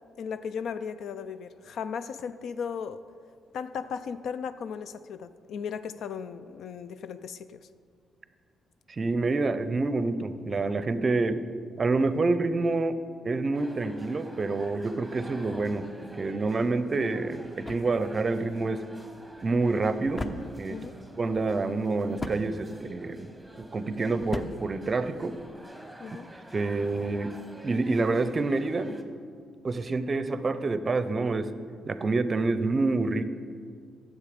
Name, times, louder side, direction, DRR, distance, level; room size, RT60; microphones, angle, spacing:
voice 1, 0.2-3.0 3.5-7.7 20.7-20.9 26.0-26.3, left 6 dB, 70° left, 12 dB, 0.3 m, -36 dB
voice 2, 8.9-11.4 11.8-13.0 13.2-15.9 16.2-18.8 19.4-20.8 21.2-25.4 26.5-29.0 29.6-31.5 31.9-33.3, right 3 dB, 35° right, 12 dB, 0.5 m, -27 dB
sound 1, 13.5-29.0, equal, ahead, 1.1 m, -50 dB
sound 2, 16.8-25.6, left 2 dB, 20° left, 0.6 m, -42 dB
9.9 x 7.3 x 5.1 m, 2.2 s
cardioid pair, 90°, 0 cm